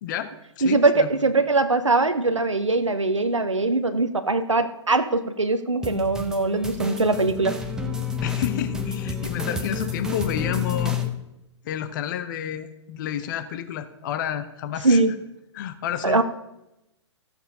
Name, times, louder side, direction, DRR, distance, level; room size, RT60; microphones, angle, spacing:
voice 1, 0.0-1.2 8.2-11.0 11.6-15.0 15.5-16.2, left 10 dB, 40° left, 11 dB, 0.8 m, -30 dB
voice 2, 0.6-7.6 14.8-15.1 16.0-16.2, right 3 dB, 85° right, 8 dB, 0.8 m, -21 dB
sound 1, 5.8-11.1, left 5 dB, 5° right, 1.0 m, -29 dB
14.5 x 7.1 x 5.4 m, 0.90 s
figure-of-eight pair, 115°, 15 cm